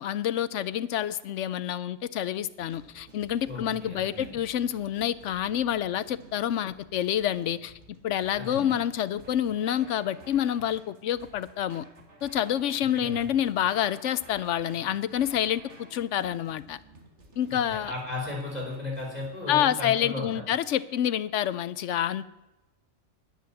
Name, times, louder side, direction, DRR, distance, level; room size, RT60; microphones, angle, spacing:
voice 1, 0.0-7.7 8.0-11.8 12.2-15.6 15.9-16.8 17.4-17.9 19.5-22.2, left 10 dB, 75° left, 0.9 m, -28 dB
sound 1, 2.6-19.8, right 1 dB, 65° right, 2.1 m, -53 dB
voice 2, 3.5-4.3 8.4-8.7 13.0-13.2 17.5-20.4, left 2 dB, 30° left, 4.6 m, -35 dB
10.5 x 10.0 x 7.1 m
omnidirectional pair, 1.3 m